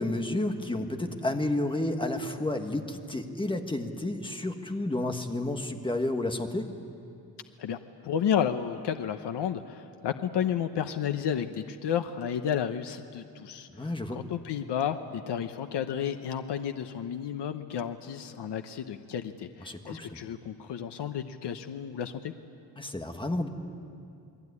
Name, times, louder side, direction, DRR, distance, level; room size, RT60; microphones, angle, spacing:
voice 1, 0.0-6.7 13.8-14.2 19.6-20.1 22.8-23.5, left 1 dB, 10° left, 4 dB, 1.5 m, -31 dB
voice 2, 8.0-13.9 14.1-22.3, left 8 dB, 80° left, 7 dB, 1.0 m, -32 dB
29.0 x 21.0 x 9.7 m, 2.5 s
wide cardioid pair, 180°, 41 cm